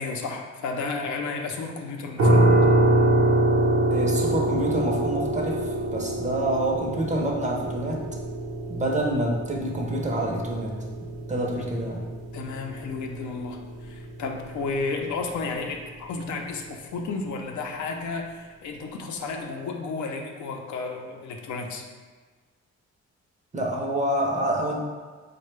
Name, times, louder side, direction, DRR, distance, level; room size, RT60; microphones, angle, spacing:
voice 1, 0.0-2.5 12.3-21.8, left 4 dB, 75° left, 2 dB, 0.5 m, -32 dB
sound 1, 2.2-15.0, right 1 dB, 55° right, 0.8 m, -25 dB
voice 2, 3.9-8.0 8.7-10.8 11.3-12.1 23.5-24.8, right 1 dB, 25° right, -1 dB, 0.6 m, -27 dB
4.4 x 2.2 x 3.2 m, 1.4 s
cardioid pair, 105°, 30 cm